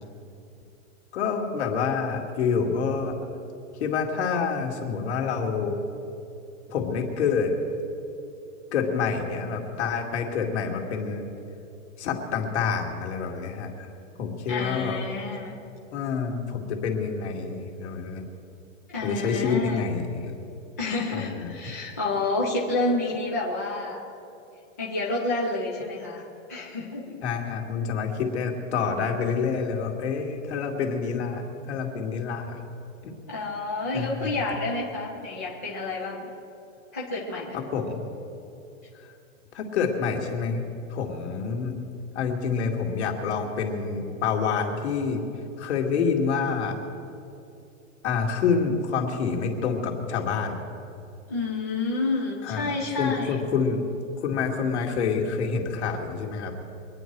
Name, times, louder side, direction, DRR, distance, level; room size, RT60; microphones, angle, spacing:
voice 1, 1.1-3.1 3.8-5.9 6.7-7.5 8.7-11.3 12.0-13.9 14.2-15.0 15.9-18.2 19.0-20.3 21.1-21.5 27.2-32.6 33.0-33.2 33.9-34.3 37.5-38.0 39.5-40.6 40.9-41.7 42.1-45.2 45.6-46.8 48.0-50.6 52.4-52.7 53.0-53.8 54.2-56.5, left 5 dB, 50° left, 2 dB, 2.4 m, -27 dB
voice 2, 14.5-15.6 18.9-19.9 20.8-24.0 24.8-26.2 26.5-27.1 33.3-36.2 36.9-37.6 51.3-53.4, left 2 dB, 15° left, -4 dB, 0.4 m, -29 dB
24.5 x 10.0 x 4.7 m, 2.7 s
hypercardioid pair, 175°, 41 cm